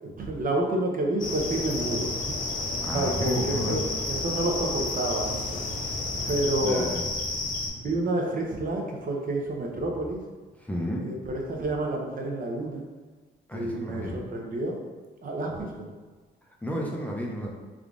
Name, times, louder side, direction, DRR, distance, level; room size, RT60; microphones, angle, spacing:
voice 1, 0.0-2.2 2.9-3.8 4.1-5.6 6.3-6.9 7.8-10.2 11.0-12.8 13.5-14.8 15.2-15.9, right 1 dB, 45° right, 0 dB, 0.7 m, -29 dB
sound 1, 1.2-7.7, left 2 dB, 40° left, 0.7 m, -31 dB
voice 2, 2.8-3.8 6.6-7.0 10.6-11.1 13.5-14.2 16.6-17.5, equal, 5° left, -3 dB, 0.5 m, -31 dB
3.6 x 2.3 x 3.6 m, 1.3 s
cardioid pair, 90°, 20 cm